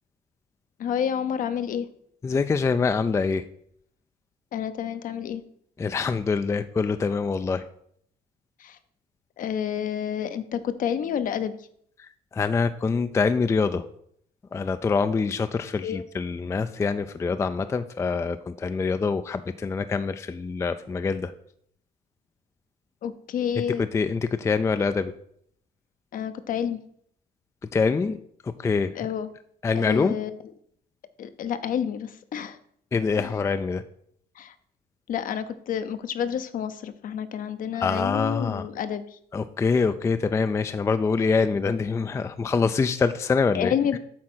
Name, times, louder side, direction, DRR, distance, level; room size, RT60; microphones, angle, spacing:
voice 1, 0.8-1.9 4.5-5.4 8.6-8.8 9.4-11.5 15.8-16.0 23.0-23.8 26.1-26.8 28.9-29.3 29.7-30.4 31.2-32.6 33.2-33.3 34.4-34.5 35.1-39.0 43.5-44.0, left 8 dB, 55° left, 11 dB, 0.7 m, -29 dB
voice 2, 2.2-3.4 5.8-7.6 12.3-13.8 14.5-21.3 23.8-25.1 27.7-28.2 28.6-28.9 29.6-30.2 32.9-33.8 37.8-38.6 39.3-44.0, left 4 dB, 15° left, 11 dB, 0.3 m, -25 dB
8.5 x 3.7 x 6.2 m, 0.67 s
cardioid pair, 110°, 17 cm